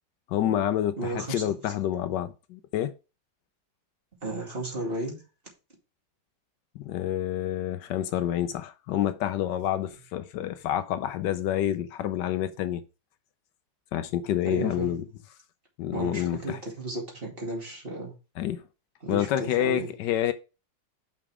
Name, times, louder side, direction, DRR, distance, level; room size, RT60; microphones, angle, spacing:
voice 1, 0.3-2.9 6.7-12.8 13.9-15.0 15.8-16.6 18.4-18.6 19.1-20.3, left 11 dB, 75° left, 1.2 m, -28 dB
voice 2, 1.0-1.7 4.2-5.2 14.4-14.9 15.9-18.1 19.0-19.9, right 1 dB, 30° right, 2.5 m, -34 dB
6.0 x 5.5 x 4.8 m
omnidirectional pair, 1.9 m